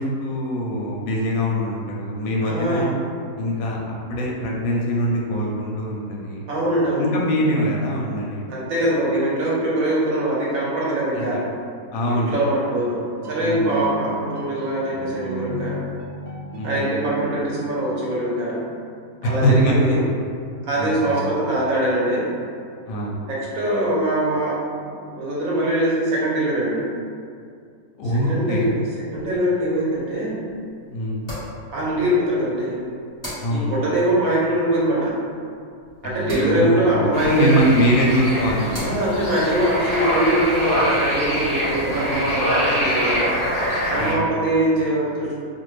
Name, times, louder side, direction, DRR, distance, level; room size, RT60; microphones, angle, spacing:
voice 1, 0.0-3.0 3.4-6.4 7.0-8.5 11.1-11.4 11.9-12.4 13.4-13.7 16.6-16.9 19.2-19.7 20.8-21.2 22.9-23.2 28.0-28.7 30.9-31.2 33.4-33.8 36.0-38.9 44.0-44.3, equal, 70° left, -2 dB, 0.9 m, -23 dB
voice 2, 2.4-2.9 6.5-7.1 8.5-11.4 12.1-13.0 13.3-15.8 16.6-18.6 19.2-20.0 20.7-22.2 23.3-24.6 24.8-26.8 28.3-28.7 29.1-30.4 31.7-32.7 33.5-35.1 36.0-37.6 38.8-43.2 43.9-45.4, right 1 dB, 65° right, -6 dB, 1.1 m, -22 dB
sound 1, 13.1-19.8 21.3-22.0, equal, 90° right, 0.5 m, -36 dB
sound 2, 29.1-42.0, equal, 15° left, 1.0 m, -42 dB
sound 3, 37.1-44.1, equal, 45° left, 0.9 m, -24 dB
2.5 x 2.5 x 3.1 m, 2.3 s
omnidirectional pair, 1.7 m